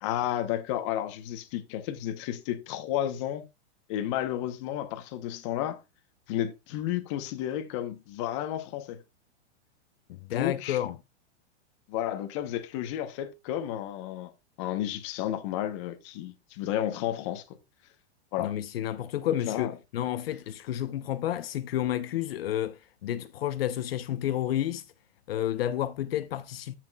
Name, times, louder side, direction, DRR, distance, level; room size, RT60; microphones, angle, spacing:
voice 1, 0.0-3.4 3.9-5.8 6.3-9.0 10.3-10.8 11.9-14.3 14.6-17.4 18.3-18.5 19.3-19.7, left 12 dB, 25° left, 0.8 m, -32 dB
voice 2, 10.1-11.0 18.4-24.8 25.3-26.7, left 12 dB, 60° left, 0.7 m, -31 dB
15.0 x 6.0 x 2.2 m
supercardioid pair, 175°, 34 cm